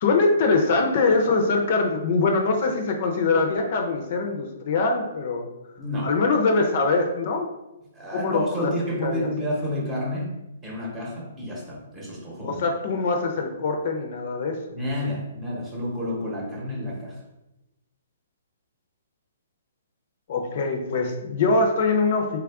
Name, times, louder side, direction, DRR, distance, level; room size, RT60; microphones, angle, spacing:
voice 1, 0.0-5.5 6.0-7.5 8.1-8.7 9.0-9.3 12.4-14.6 20.3-22.4, left 3 dB, 50° left, 3 dB, 0.5 m, -23 dB
voice 2, 5.8-6.1 7.9-10.4 10.6-12.6 14.7-17.2, left 1 dB, 15° right, -3 dB, 0.9 m, -30 dB
3.3 x 2.4 x 3.5 m, 0.96 s
hypercardioid pair, 145°, 0 cm